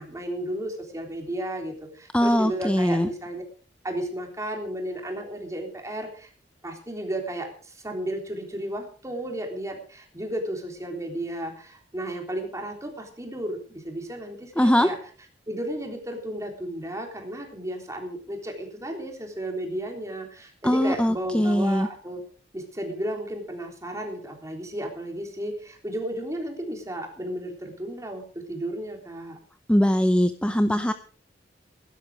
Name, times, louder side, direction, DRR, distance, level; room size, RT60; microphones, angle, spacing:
voice 1, 0.0-3.4 3.8-6.3 6.6-15.0 15.5-22.2 22.5-29.4, right 1 dB, 15° right, 3 dB, 3.5 m, -33 dB
voice 2, 2.1-3.1 14.6-14.9 20.6-21.9 29.7-30.9, equal, 5° left, 10 dB, 0.6 m, -21 dB
16.5 x 12.0 x 4.9 m, 0.41 s
head